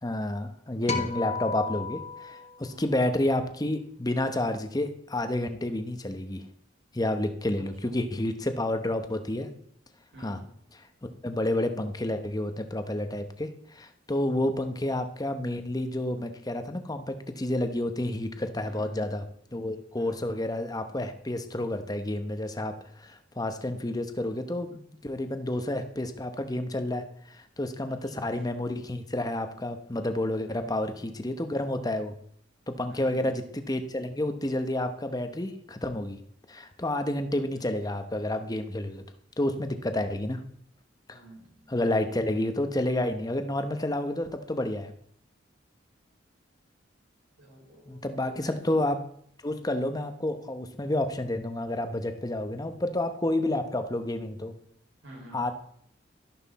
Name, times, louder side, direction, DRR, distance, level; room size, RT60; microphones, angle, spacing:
voice 1, 0.0-6.4 6.9-9.5 10.2-10.4 11.0-19.2 19.5-32.1 32.7-36.2 36.5-39.0 39.4-40.4 41.1-41.2 41.7-44.9 47.9-49.0 49.4-54.5 55.3-55.5, left 1 dB, 20° left, 8 dB, 1.0 m, -30 dB
sound 1, 0.9-3.4, left 5 dB, 35° left, 1.4 m, -35 dB
voice 2, 7.6-7.9 10.1-10.5 18.6-19.1 19.9-20.4 27.9-28.2 30.5-30.8 32.9-33.4 37.3-37.6 41.1-41.7 47.4-48.8 55.0-55.4, right 1 dB, 90° right, -2 dB, 5.8 m, -49 dB
12.0 x 11.5 x 4.2 m, 0.66 s
head